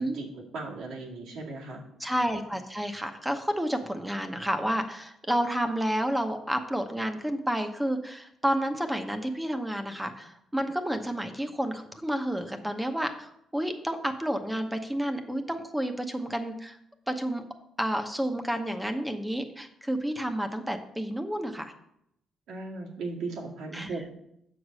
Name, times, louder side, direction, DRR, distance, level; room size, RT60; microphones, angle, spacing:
voice 1, 0.0-1.8 22.5-24.2, right 3 dB, 85° right, -3 dB, 2.0 m, -37 dB
voice 2, 2.0-16.8 17.1-17.4 17.8-21.7 23.7-24.0, equal, 5° right, 6 dB, 0.8 m, -30 dB
7.1 x 4.9 x 6.2 m, 0.77 s
cardioid pair, 90°, 0 cm